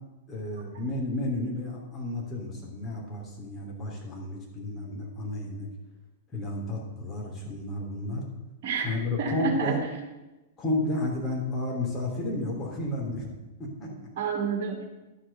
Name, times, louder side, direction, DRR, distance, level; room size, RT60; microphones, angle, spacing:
voice 1, 0.3-5.7 6.3-8.3 8.8-9.8 10.6-13.3 13.6-14.1, left 1 dB, 25° left, -1 dB, 3.0 m, -32 dB
voice 2, 8.6-8.9 9.2-9.9 14.2-14.8, right 5 dB, 50° right, 2 dB, 2.3 m, -29 dB
11.5 x 5.1 x 6.6 m, 1.1 s
figure-of-eight pair, 100°, 0 cm